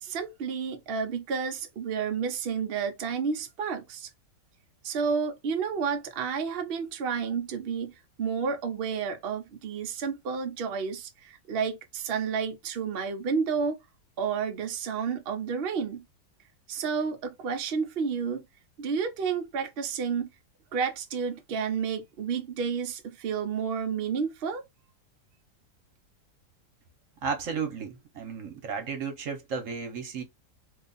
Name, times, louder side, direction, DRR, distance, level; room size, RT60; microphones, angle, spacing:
voice 1, 0.0-4.1 4.8-13.8 14.2-16.0 16.7-18.4 18.8-20.3 20.7-24.6, right 6 dB, 80° right, 0.5 m, -31 dB
voice 2, 27.2-30.2, right 5 dB, 55° right, 1.1 m, -33 dB
2.8 x 2.3 x 3.9 m
omnidirectional pair, 1.8 m